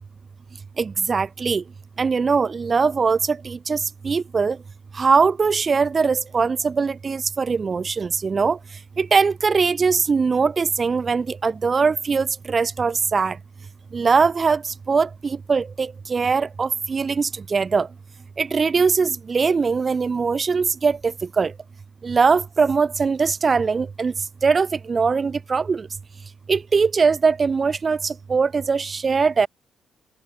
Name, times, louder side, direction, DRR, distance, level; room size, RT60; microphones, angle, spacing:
voice 1, 0.8-1.6 2.0-4.6 5.0-8.6 9.0-13.4 13.9-14.6 14.9-17.9 18.4-21.5 22.0-24.1 24.4-25.9 26.5-29.5, right 5 dB, 35° right, 0.8 m, -21 dB
open air
cardioid pair, 90°, 0 cm